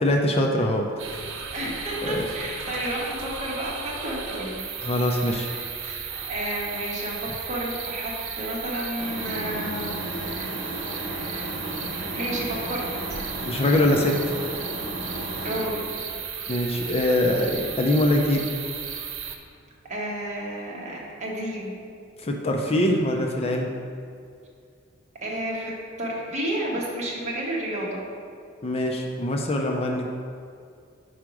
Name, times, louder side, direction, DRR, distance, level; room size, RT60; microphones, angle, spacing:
voice 1, 0.0-1.2 2.0-2.3 4.8-5.5 5.8-6.0 13.4-14.2 16.5-18.4 22.2-23.7 28.6-30.1, left 1 dB, 30° left, 1 dB, 0.5 m, -23 dB
sound 1, 1.0-19.4, right 7 dB, 70° right, 0.7 m, -35 dB
voice 2, 1.5-4.6 5.8-10.0 11.8-12.8 15.4-15.9 19.9-21.7 25.2-25.7 26.0-28.0, right 1 dB, 35° right, -4 dB, 1.3 m, -31 dB
sound 2, 9.0-15.7, equal, 65° left, 1.1 m, -34 dB
4.9 x 4.6 x 6.0 m, 2.3 s
head